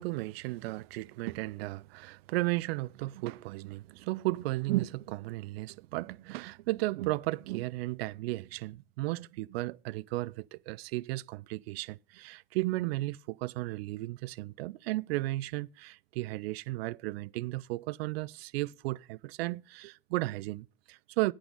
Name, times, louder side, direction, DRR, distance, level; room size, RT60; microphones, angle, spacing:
voice 1, 0.0-21.3, right 19 dB, 75° right, 0.5 m, -34 dB
10.0 x 8.8 x 5.4 m
hypercardioid pair, 65°, 31 cm